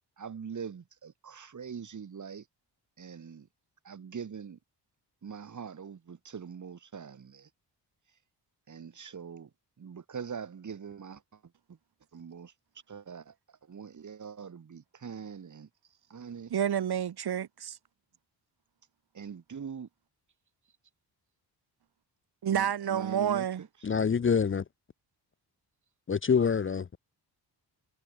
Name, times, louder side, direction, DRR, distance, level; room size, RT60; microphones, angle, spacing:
voice 1, 0.2-2.4 3.0-3.5 3.8-4.6 5.2-7.5 8.7-9.5 9.8-11.2 12.1-12.5 12.9-13.3 13.7-15.7 16.1-16.5 19.1-19.9 22.5-23.7, right 6 dB, 45° right, 7.0 m, -42 dB
voice 2, 16.5-17.8 22.4-23.6, right 9 dB, 65° right, 3.5 m, -29 dB
voice 3, 23.8-24.6 26.1-27.0, left 6 dB, 30° left, 0.8 m, -26 dB
wide cardioid pair, 170°, 40 cm